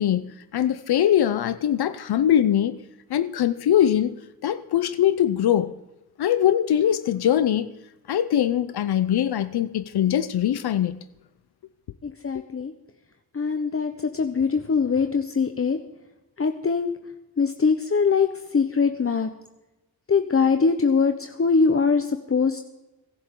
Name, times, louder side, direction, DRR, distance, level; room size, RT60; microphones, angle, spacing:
voice 1, 0.0-2.8 3.1-4.2 4.4-5.8 6.2-7.7 8.1-11.0, left 10 dB, 80° left, 0.7 m, -22 dB
voice 2, 12.0-12.7 13.3-15.8 16.4-16.9 17.4-18.3 18.5-19.3 20.1-22.6, left 5 dB, 35° left, 1.0 m, -22 dB
24.0 x 11.0 x 3.8 m
cardioid pair, 65°, 38 cm